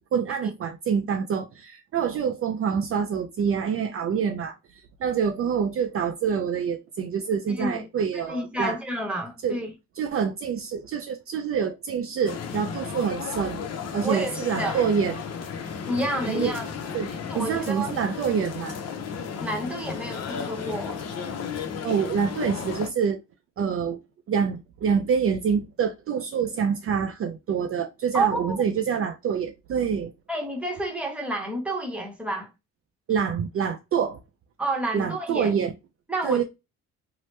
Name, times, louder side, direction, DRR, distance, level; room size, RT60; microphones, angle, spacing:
voice 1, 0.1-8.8 9.4-9.6 10.0-13.7 13.9-15.2 16.3-16.5 16.9-18.8 21.8-23.2 23.6-24.0 24.3-30.1 33.1-34.2 34.9-35.7 36.2-36.4, right 7 dB, 50° right, 0.4 m, -26 dB
voice 2, 7.5-7.8 8.1-9.7 14.0-14.8 15.9-16.7 17.3-17.9 19.4-21.0 28.1-28.6 30.3-32.5 34.6-35.5 36.1-36.4, right 1 dB, 5° right, 1.0 m, -29 dB
sound 1, 12.3-22.9, left 6 dB, 55° left, 0.7 m, -34 dB
2.9 x 2.1 x 3.2 m
cardioid pair, 90°, 30 cm